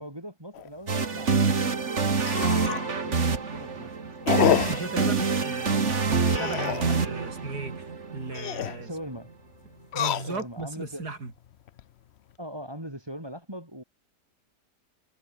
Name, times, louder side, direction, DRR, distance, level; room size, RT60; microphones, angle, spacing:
voice 1, 0.0-4.4 8.8-9.3 10.1-11.1 12.4-13.8, equal, 15° right, 6.2 m, -41 dB
sound 1, 0.5-0.7 1.2-1.3 1.5-1.6 2.2-2.9 3.3-3.6 4.3-4.9 6.2-7.0 8.2-8.8 9.8-10.6 11.3-11.8, left 10 dB, 60° left, 0.7 m, -28 dB
sound 2, 0.9-8.8, right 5 dB, 45° right, 2.2 m, -26 dB
voice 2, 4.5-7.8 8.1-8.9 9.9-11.3, right 3 dB, 70° right, 4.6 m, -36 dB
omnidirectional pair, 1.8 m